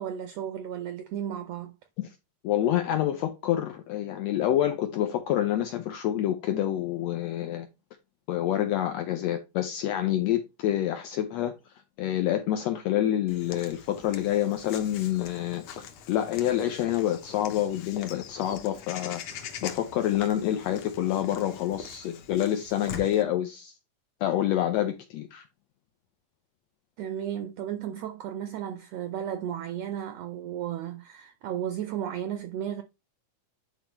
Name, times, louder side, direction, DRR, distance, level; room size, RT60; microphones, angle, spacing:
voice 1, 0.0-1.7 27.0-32.8, right 10 dB, 85° right, 1.4 m, -34 dB
voice 2, 2.4-7.7 8.3-11.5 12.0-23.7 24.2-25.4, left 12 dB, 85° left, 1.5 m, -27 dB
Walk footsteps / Bird vocalization bird call bird song, 13.3-23.2, left 7 dB, 65° left, 1.7 m, -43 dB
10.5 x 4.4 x 3.0 m
omnidirectional pair, 3.8 m